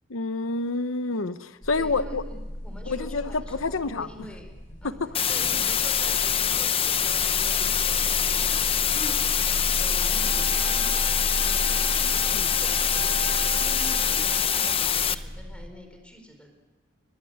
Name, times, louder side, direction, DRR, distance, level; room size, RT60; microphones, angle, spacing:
voice 1, 0.1-2.2 2.9-4.1 5.0-5.4 12.3-12.6, left 3 dB, 90° left, 13 dB, 1.0 m, -28 dB
sound 1, 1.6-15.7, equal, 45° left, 3.6 m, -35 dB
voice 2, 1.8-4.5 4.8-5.0 5.3-9.2 9.7-12.3 12.6-13.2 13.5-16.5, equal, 5° left, 4 dB, 4.7 m, -45 dB
sound 2, 5.1-15.1, left 8 dB, 30° left, 0.7 m, -24 dB
sound 3, 10.1-15.1, right 6 dB, 55° right, 1.1 m, -39 dB
23.0 x 20.5 x 9.4 m, 1.2 s
head